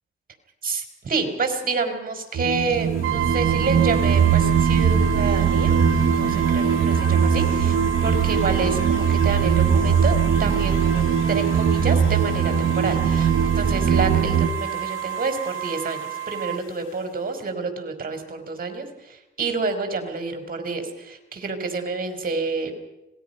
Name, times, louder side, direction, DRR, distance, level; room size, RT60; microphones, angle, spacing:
voice 1, 0.6-22.7, right 4 dB, 45° right, 6 dB, 4.4 m, -29 dB
sound 1, 2.3-17.3, left 6 dB, 85° left, 4.0 m, -41 dB
sound 2, 2.3-14.5, right 7 dB, 60° right, 1.4 m, -20 dB
Brass instrument, 3.0-16.7, right 14 dB, 85° right, 1.0 m, -31 dB
26.0 x 19.0 x 5.6 m, 0.98 s
cardioid pair, 80°, 20 cm